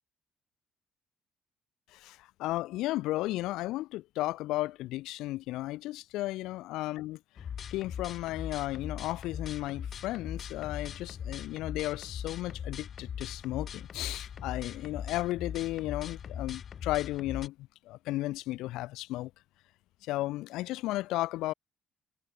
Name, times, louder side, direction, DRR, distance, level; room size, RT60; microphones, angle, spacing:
voice 1, 1.9-7.2 7.7-17.6 17.9-19.3 20.0-21.5, left 17 dB, 85° left, 0.3 m, -34 dB
sound 1, 7.4-17.5, left 8 dB, 50° left, 1.0 m, -40 dB
cardioid pair, 100°, 0 cm